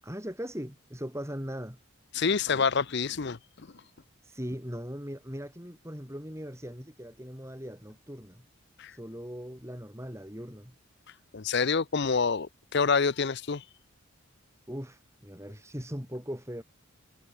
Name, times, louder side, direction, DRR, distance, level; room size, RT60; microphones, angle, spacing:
voice 1, 0.0-1.8 4.2-8.4 8.9-10.7 14.7-16.6, equal, 15° right, 8.0 m, -39 dB
voice 2, 2.1-3.4 8.8-8.9 11.3-13.6, left 5 dB, 50° left, 0.6 m, -27 dB
head